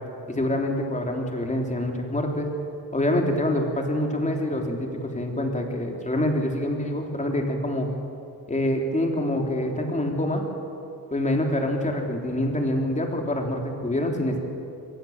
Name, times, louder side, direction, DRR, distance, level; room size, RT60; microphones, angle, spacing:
voice 1, 0.3-2.5 2.9-7.9 8.5-10.4 11.1-14.4, left 1 dB, 20° left, 2 dB, 3.4 m, -26 dB
24.5 x 19.0 x 7.3 m, 2.6 s
cardioid pair, 120°, 40 cm